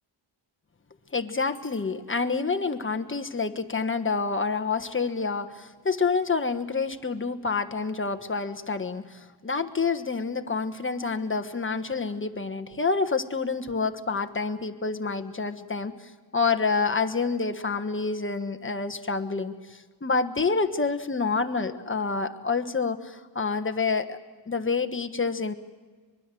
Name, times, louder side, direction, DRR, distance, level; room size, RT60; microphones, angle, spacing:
voice 1, 1.1-24.2 24.5-25.5, left 4 dB, 25° left, 8 dB, 1.3 m, -28 dB
24.0 x 22.0 x 7.7 m, 1.5 s
wide cardioid pair, 95°, 47 cm